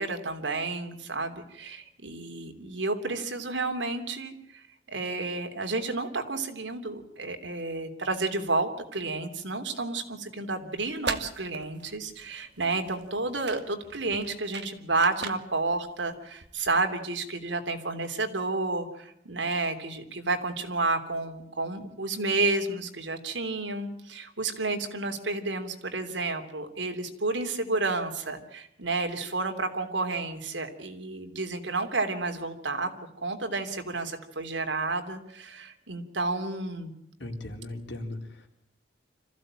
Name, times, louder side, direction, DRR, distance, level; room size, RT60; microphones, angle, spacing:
voice 1, 0.0-4.3 4.9-32.9 33.2-36.9, right 3 dB, 85° right, 6 dB, 3.2 m, -31 dB
sound 1, 10.8-16.8, right 5 dB, 65° right, 1.9 m, -40 dB
voice 2, 37.2-38.5, left 1 dB, 75° left, 3 dB, 4.3 m, -38 dB
26.5 x 15.5 x 8.9 m, 0.77 s
head